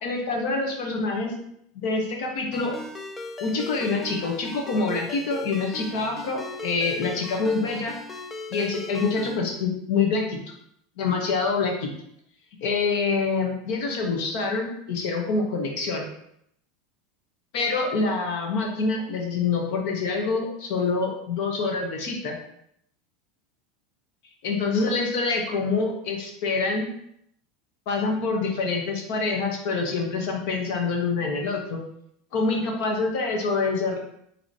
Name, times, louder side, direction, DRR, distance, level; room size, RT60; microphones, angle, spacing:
voice 1, 0.0-1.3 1.7-2.7 3.4-7.9 8.5-10.4 11.0-11.9 12.6-16.1 17.5-22.4 24.4-26.9 27.9-31.8 32.3-34.0, left 4 dB, 55° left, 1 dB, 1.0 m, -26 dB
Ringtone, 2.5-9.4, left 3 dB, 10° left, 0.3 m, -38 dB
5.9 x 3.0 x 2.8 m, 0.73 s
supercardioid pair, 175°, 0 cm